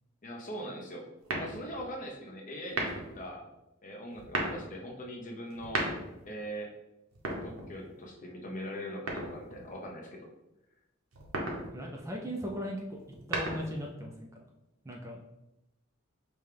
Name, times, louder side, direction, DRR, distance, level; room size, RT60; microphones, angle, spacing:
voice 1, 0.2-1.1 1.4-3.4 3.8-5.8 6.2-6.7 7.4-10.3, equal, 40° left, 0 dB, 0.7 m, -41 dB
sound 1, 1.2-1.9 2.6-3.2 4.1-4.6 5.5-6.3 7.1-8.0 9.1-9.7 11.1-11.7 13.0-13.9, right 2 dB, 75° right, 0.9 m, -35 dB
voice 2, 11.7-13.0 13.3-14.3 14.8-15.2, equal, 15° right, 0 dB, 0.4 m, -38 dB
5.3 x 2.2 x 3.3 m, 0.94 s
head